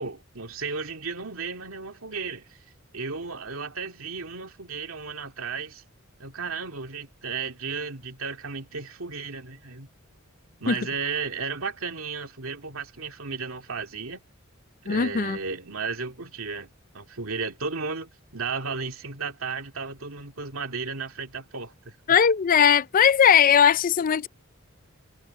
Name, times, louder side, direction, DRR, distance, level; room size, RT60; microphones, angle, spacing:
voice 1, 0.0-2.5 2.9-5.8 6.2-9.9 10.6-14.2 14.8-22.0, right 4 dB, 85° right, 2.3 m, -34 dB
voice 2, 14.9-15.4 22.1-24.3, left 8 dB, 40° left, 0.4 m, -19 dB
head